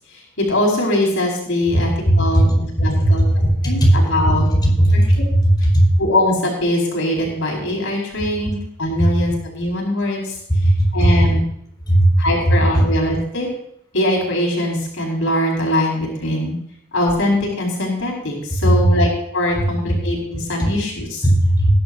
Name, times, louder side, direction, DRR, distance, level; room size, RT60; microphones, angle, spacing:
voice 1, 0.1-1.9 2.1-3.2 3.6-4.5 4.9-5.0 6.0-10.4 10.9-11.4 12.2-13.5 13.9-16.5 16.9-21.2, left 1 dB, 70° left, -1 dB, 4.8 m, -21 dB
voice 2, 1.7-2.4 3.0-3.5 3.8-3.9 4.6-5.2 5.7-5.9 9.0-9.1 10.5-10.9 11.9-12.1 12.4-12.5 18.6-18.7 21.2-21.7, right 1 dB, 20° left, -2 dB, 4.7 m, -15 dB
19.5 x 11.0 x 2.7 m, 0.72 s
head